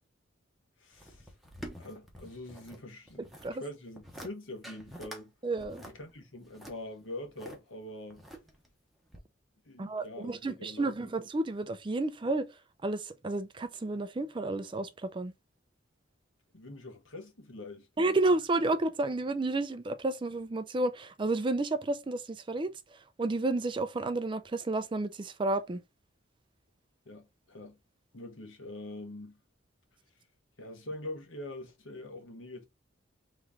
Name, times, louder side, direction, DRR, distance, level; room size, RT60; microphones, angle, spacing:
voice 1, 0.8-1.3 1.8-5.3 5.7-8.2 9.6-11.1 16.5-17.9 27.0-27.8 28.1-29.4 30.6-32.7, left 1 dB, 85° left, 1.2 m, -44 dB
sound 1, 0.9-2.8 3.1-3.5 3.9-4.3 4.6-5.2 5.6-7.6 8.1-8.7 9.1-9.2, right 1 dB, ahead, 1.0 m, -47 dB
voice 2, 5.4-5.8 9.8-12.5 12.8-15.3 18.0-22.7 23.2-25.8, right 2 dB, 25° right, 0.4 m, -31 dB
3.9 x 3.1 x 3.6 m
head